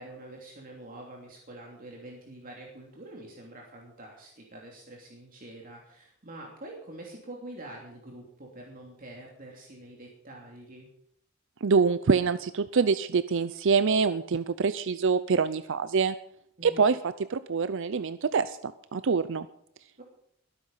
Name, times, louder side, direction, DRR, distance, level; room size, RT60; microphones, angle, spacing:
voice 1, 0.0-10.9 16.6-16.9 20.0-20.1, right 1 dB, 45° right, -1 dB, 3.1 m, -46 dB
voice 2, 11.6-16.1 16.6-17.0 17.3-19.5, right 5 dB, 65° right, 13 dB, 0.5 m, -25 dB
21.0 x 9.0 x 5.6 m, 0.71 s
head